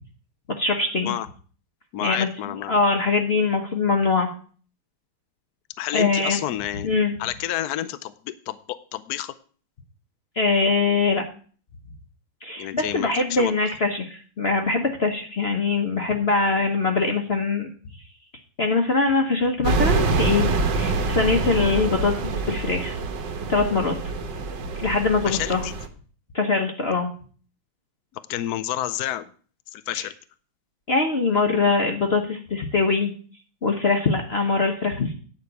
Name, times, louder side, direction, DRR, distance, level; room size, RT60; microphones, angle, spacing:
voice 1, 0.6-1.2 2.0-4.3 5.9-6.4 6.8-7.1 10.4-11.2 12.4-17.7 18.6-20.5 20.7-23.0 23.5-23.9 24.8-25.6 26.3-27.1 30.0-30.1 30.9-33.1 33.6-35.1, left 4 dB, 40° left, 2 dB, 1.1 m, -22 dB
voice 2, 1.9-2.7 5.8-6.9 7.2-9.3 12.6-13.5 25.2-25.7 28.1-29.3 29.7-30.1, left 13 dB, 70° left, 13 dB, 1.0 m, -29 dB
sound 1, 19.6-25.9, right 3 dB, 70° right, 1.7 m, -25 dB
9.7 x 5.2 x 8.0 m, 0.42 s
omnidirectional pair, 2.0 m